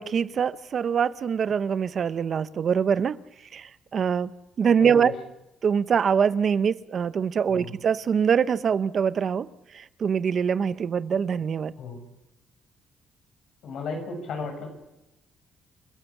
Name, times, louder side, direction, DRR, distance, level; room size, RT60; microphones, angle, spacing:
voice 1, 0.0-3.2 3.5-4.3 4.6-5.1 5.6-9.5 10.0-11.7, right 7 dB, 55° right, 0.8 m, -24 dB
voice 2, 4.8-5.1 7.5-7.7 11.8-12.0 13.6-14.7, left 4 dB, 75° left, 7.2 m, -35 dB
29.5 x 13.5 x 7.3 m
cardioid pair, 90°, 0 cm